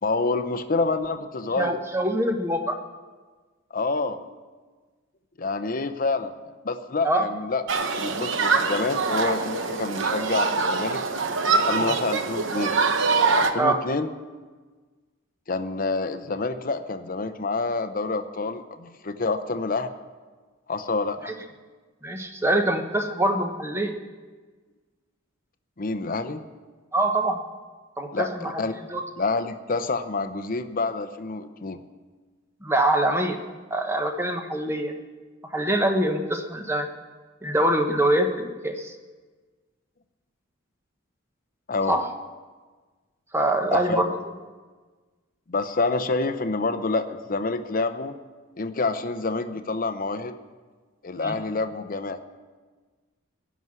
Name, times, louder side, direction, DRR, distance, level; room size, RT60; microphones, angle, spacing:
voice 1, 0.0-1.8 3.7-4.2 5.4-6.3 6.6-7.6 8.0-11.0 11.6-12.8 13.4-14.1 15.5-19.9 20.7-21.3 25.8-26.5 28.1-28.7 29.2-31.8 41.7-42.0 43.7-44.1 45.5-48.2 48.6-50.4 51.0-52.2, left 3 dB, 45° left, 10 dB, 0.7 m, -27 dB
voice 2, 1.6-2.8 7.0-7.3 13.6-13.8 21.3-21.4 22.0-24.0 26.9-27.4 28.0-28.6 28.9-29.0 32.6-33.4 33.7-35.0 35.5-36.9 37.4-38.9 41.9-42.1 43.3-44.1 51.2-51.4, right 1 dB, 10° right, 5 dB, 1.0 m, -24 dB
Human group actions, 7.7-13.5, right 4 dB, 65° right, 0.9 m, -24 dB
16.5 x 6.1 x 9.7 m, 1.4 s
head